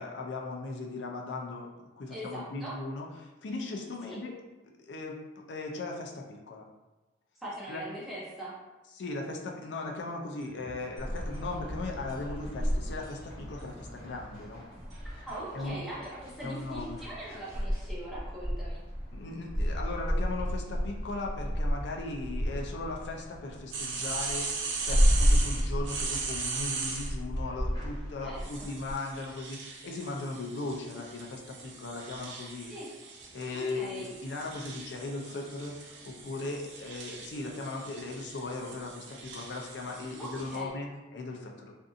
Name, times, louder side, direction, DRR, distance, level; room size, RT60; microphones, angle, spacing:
voice 1, 0.0-1.7 2.0-4.4 4.8-5.2 5.5-6.7 7.7-7.9 8.9-14.6 15.5-15.8 16.4-17.0 19.1-24.5 24.8-32.7 33.3-41.7, left 3 dB, 65° left, 0 dB, 0.4 m, -38 dB
voice 2, 2.1-2.7 4.1-4.2 7.4-8.5 15.0-18.8 28.2-28.7 32.6-32.9 33.5-34.1 40.2-40.7, right 1 dB, ahead, -9 dB, 0.7 m, -41 dB
sound 1, 10.4-17.9, equal, 35° right, 1.2 m, -53 dB
sound 2, 11.0-28.9, equal, 25° left, 1.0 m, -32 dB
sound 3, 23.7-27.1 28.4-40.6, right 4 dB, 70° right, 0.4 m, -39 dB
2.6 x 2.5 x 2.4 m, 1.1 s
head